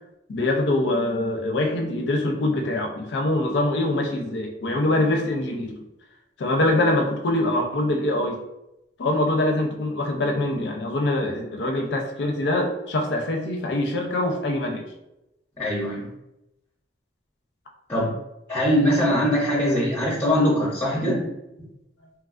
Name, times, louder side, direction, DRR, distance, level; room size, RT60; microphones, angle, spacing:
voice 1, 0.3-5.8 6.4-8.4 9.0-14.9, left 1 dB, 85° left, 2 dB, 0.5 m, -24 dB
voice 2, 15.6-16.1 17.9-18.1 18.5-21.3 21.6-21.7, equal, 15° left, -5 dB, 0.5 m, -22 dB
3.0 x 2.3 x 2.4 m, 0.89 s
head